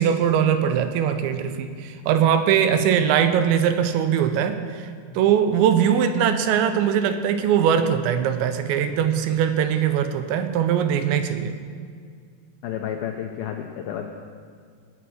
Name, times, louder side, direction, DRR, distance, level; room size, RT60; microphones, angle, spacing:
voice 1, 0.0-4.9 5.2-11.5, right 8 dB, 80° right, 9 dB, 3.0 m, -21 dB
voice 2, 12.6-14.1, left 9 dB, 90° left, 3 dB, 2.1 m, -31 dB
19.0 x 9.0 x 6.3 m, 2.1 s
omnidirectional pair, 5.3 m